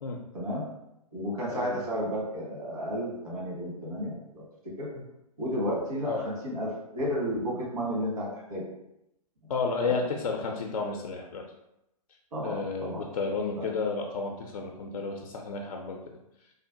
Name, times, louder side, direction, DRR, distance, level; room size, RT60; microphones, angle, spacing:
voice 1, 0.3-0.6 1.1-4.4 4.8-4.9 5.4-8.6 9.4-9.5 9.8-9.9 12.3-13.0 13.6-13.7, equal, 65° right, -4 dB, 1.4 m, -32 dB
voice 2, 9.5-11.4 12.4-16.0, left 4 dB, 60° left, 2 dB, 0.4 m, -32 dB
3.2 x 2.1 x 2.5 m, 0.85 s
figure-of-eight pair, 120°, 20 cm